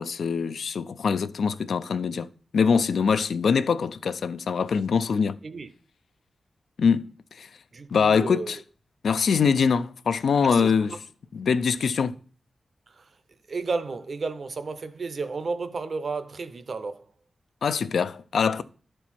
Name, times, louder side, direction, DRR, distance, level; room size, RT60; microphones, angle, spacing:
voice 1, 0.0-5.4 6.8-7.1 7.4-7.5 7.9-8.6 9.0-10.9 11.3-12.2 17.6-18.6, left 6 dB, 70° left, 0.3 m, -23 dB
voice 2, 7.7-8.6 10.4-11.0 12.9-13.1 13.5-17.1, right 4 dB, 45° right, 0.6 m, -32 dB
11.0 x 4.5 x 4.2 m
wide cardioid pair, 165°, 0 cm